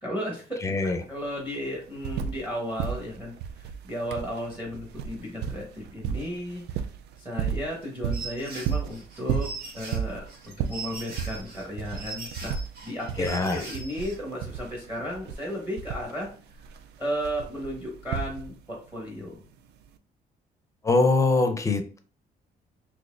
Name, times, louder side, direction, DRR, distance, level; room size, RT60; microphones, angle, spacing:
voice 1, 0.0-6.8 7.2-9.5 9.7-12.6 12.8-16.3 17.0-19.4, equal, 10° right, -2 dB, 1.1 m, -34 dB
voice 2, 0.6-1.0 13.2-13.6 20.8-22.0, left 3 dB, 20° left, 6 dB, 0.5 m, -23 dB
sound 1, 0.7-0.8 1.1-2.5 2.8-18.8 19.8-19.9, right 8 dB, 85° right, 0.4 m, -34 dB
sound 2, 8.1-14.2, right 3 dB, 70° right, 1.5 m, -41 dB
4.0 x 2.9 x 2.5 m, 0.40 s
cardioid pair, 140°, 17 cm